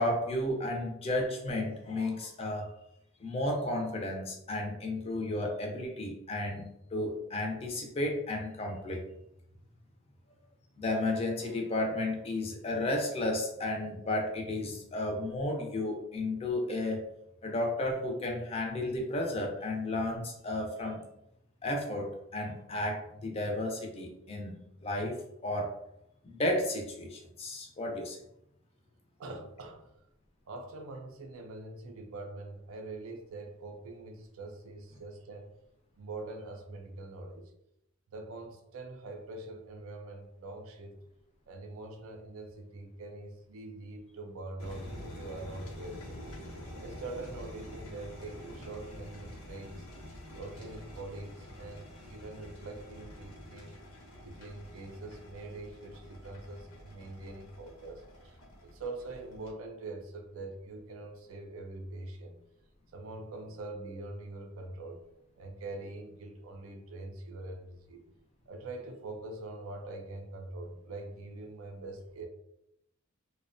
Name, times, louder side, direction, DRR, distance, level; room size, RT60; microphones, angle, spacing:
voice 1, 0.0-2.7 3.2-9.1 10.8-17.0 17.4-21.0 21.6-25.8 26.2-28.2, left 1 dB, 25° left, 1 dB, 0.4 m, -33 dB
voice 2, 29.2-29.9 30.5-35.5 36.0-37.5 38.1-40.9 41.5-46.2 46.8-49.9 50.4-53.8 54.2-62.4 62.9-65.0 65.4-68.0 68.5-72.3, right 2 dB, 75° right, 4 dB, 0.4 m, -44 dB
sound 1, 44.6-59.5, left 1 dB, 90° left, 0.8 m, -47 dB
2.6 x 2.1 x 2.5 m, 0.80 s
head